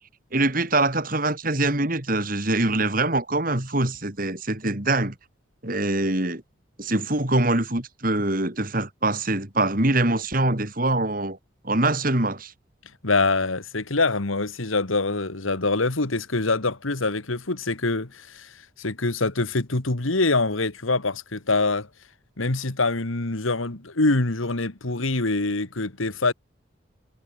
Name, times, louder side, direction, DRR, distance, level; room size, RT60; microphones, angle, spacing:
voice 1, 0.3-5.1 5.6-6.4 6.8-11.4 11.6-12.5, right 2 dB, 45° right, 3.0 m, -24 dB
voice 2, 13.0-21.9 22.4-26.3, left 3 dB, 85° left, 2.0 m, -25 dB
head